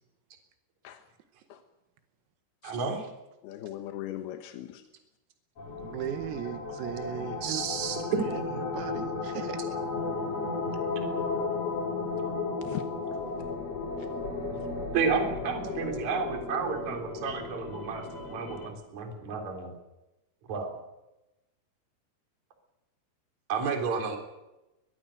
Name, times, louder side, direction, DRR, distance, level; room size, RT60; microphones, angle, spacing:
voice 1, 2.6-3.1 7.4-8.0 14.9-19.7 20.5-20.7 23.5-24.2, right 5 dB, 40° right, 4 dB, 4.2 m, -31 dB
voice 2, 3.4-4.8 12.6-12.8 13.1-13.2 14.0-14.1, left 13 dB, 75° left, 7 dB, 2.4 m, -39 dB
sound 1, 5.6-18.7, left 4 dB, 35° left, 3.9 m, -34 dB
voice 3, 5.8-7.6 8.1-9.6, right 9 dB, 85° right, 9 dB, 4.5 m, -37 dB
22.5 x 22.0 x 6.6 m, 0.98 s
omnidirectional pair, 6.0 m